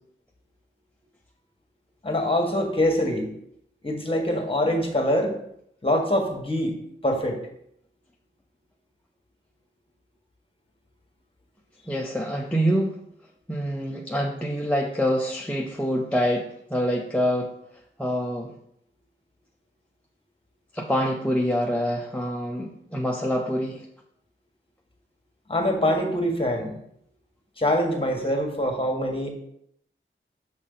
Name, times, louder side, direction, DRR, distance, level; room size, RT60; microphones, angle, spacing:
voice 1, 2.0-3.3 3.8-5.3 5.8-6.7 7.0-7.4 25.5-26.7 27.6-29.3, left 1 dB, 25° left, 2 dB, 1.6 m, -24 dB
voice 2, 11.9-13.0 13.5-17.6 18.0-18.5 20.7-23.9, equal, 5° left, -1 dB, 0.7 m, -26 dB
6.3 x 6.0 x 4.0 m, 0.72 s
wide cardioid pair, 85°, 21 cm